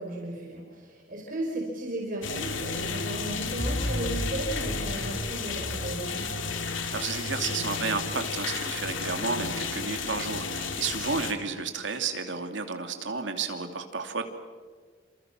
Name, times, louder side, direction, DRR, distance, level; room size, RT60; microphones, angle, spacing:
voice 1, 0.0-6.3, right 1 dB, 45° right, -2 dB, 5.4 m, -35 dB
sound 1, 2.2-11.3, left 4 dB, 80° left, 2.4 m, -33 dB
sound 2, 3.6-6.7, equal, 5° left, 3.6 m, -34 dB
voice 2, 6.9-14.2, right 4 dB, 70° right, 5 dB, 2.8 m, -32 dB
29.5 x 27.0 x 6.3 m, 1.5 s
head